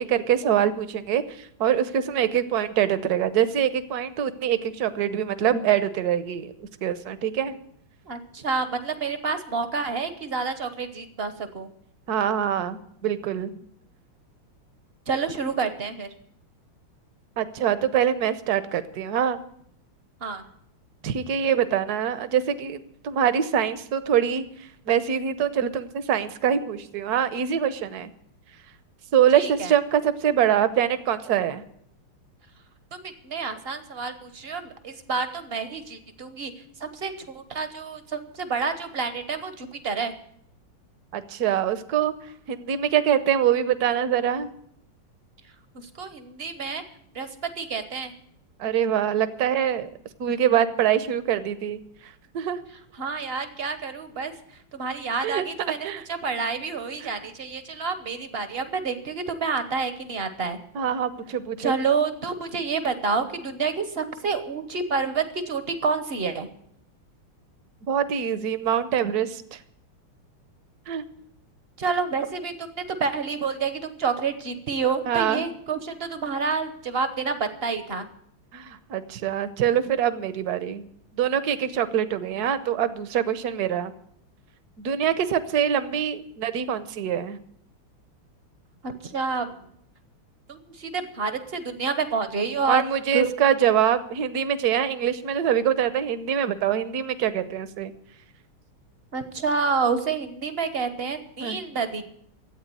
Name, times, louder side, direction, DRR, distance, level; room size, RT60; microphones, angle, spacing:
voice 1, 0.0-7.6 12.1-13.6 17.4-19.4 21.0-22.8 23.0-28.1 29.1-31.6 41.1-42.1 42.5-44.5 48.6-49.9 50.2-52.6 55.2-55.4 55.8-56.0 57.0-57.1 60.7-61.7 67.9-69.6 70.9-71.0 75.1-75.5 78.5-80.8 81.2-83.9 84.8-87.4 92.7-97.9 101.4-101.6, right 9 dB, 60° right, 12 dB, 1.1 m, -24 dB
voice 2, 8.1-11.7 15.1-16.1 20.2-20.4 29.3-29.7 32.9-36.5 36.8-40.1 45.7-46.8 47.1-48.1 53.0-54.3 54.7-60.6 61.6-66.5 71.8-78.1 85.0-85.1 88.8-89.5 90.5-92.8 93.1-93.3 99.1-102.0, right 5 dB, 45° right, 9 dB, 0.8 m, -28 dB
13.5 x 8.7 x 9.0 m, 0.70 s
omnidirectional pair, 2.4 m